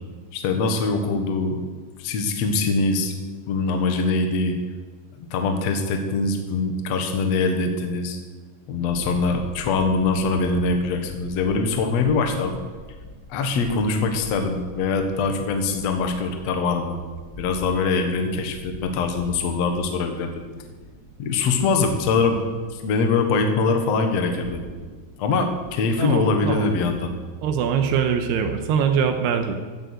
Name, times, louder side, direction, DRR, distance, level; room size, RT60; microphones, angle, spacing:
voice 1, 0.3-1.7 2.0-3.1 3.5-4.6 5.1-8.2 8.7-12.6 13.3-17.0 17.4-20.4 21.2-22.4 22.7-24.6 25.2-27.1, left 4 dB, 60° left, 5 dB, 1.8 m, -23 dB
sound 1, 12.7-27.3, equal, 25° left, 3.2 m, -44 dB
voice 2, 26.0-26.7 27.4-29.6, right 7 dB, 85° right, 6 dB, 2.9 m, -22 dB
15.0 x 6.9 x 7.9 m, 1.5 s
omnidirectional pair, 4.7 m